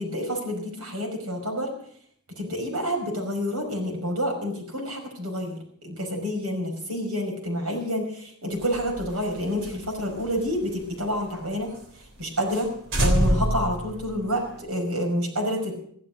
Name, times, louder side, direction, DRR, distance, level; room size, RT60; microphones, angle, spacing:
voice 1, 0.0-1.7 2.4-5.6 5.8-11.7 12.2-12.7 13.0-15.8, equal, 80° right, 1 dB, 5.6 m, -28 dB
sound 1, 8.6-11.4 11.7-11.8 12.2-12.3 12.5-12.7 12.9-14.6, equal, 60° right, 3.5 m, -27 dB
15.0 x 12.0 x 6.2 m, 0.62 s
head